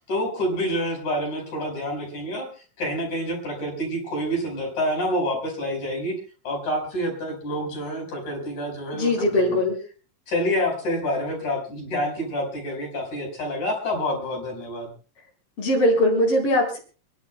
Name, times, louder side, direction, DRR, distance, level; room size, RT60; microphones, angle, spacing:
voice 1, 0.1-2.5 2.8-6.2 6.4-9.6 10.3-14.9, equal, 60° left, 1 dB, 6.3 m, -27 dB
voice 2, 8.9-9.7 15.6-16.8, left 1 dB, 45° left, -2 dB, 5.2 m, -20 dB
30.0 x 11.5 x 2.3 m, 0.36 s
omnidirectional pair, 3.8 m